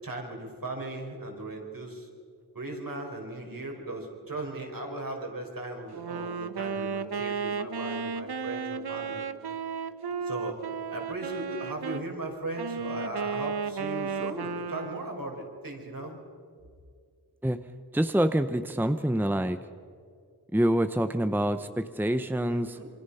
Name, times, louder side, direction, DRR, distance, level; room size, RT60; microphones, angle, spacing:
voice 1, 0.0-2.1 2.5-9.2 10.2-10.6 10.9-16.2 22.5-22.9, right 2 dB, 60° right, 1 dB, 5.1 m, -37 dB
Wind instrument woodwind instrument, 5.9-12.1 12.6-15.2, right 5 dB, 80° right, 1.0 m, -34 dB
voice 2, 17.9-19.6 20.5-22.8, right 1 dB, 5° right, 9 dB, 0.9 m, -26 dB
27.5 x 24.0 x 5.7 m, 2.2 s
wide cardioid pair, 65°, 38 cm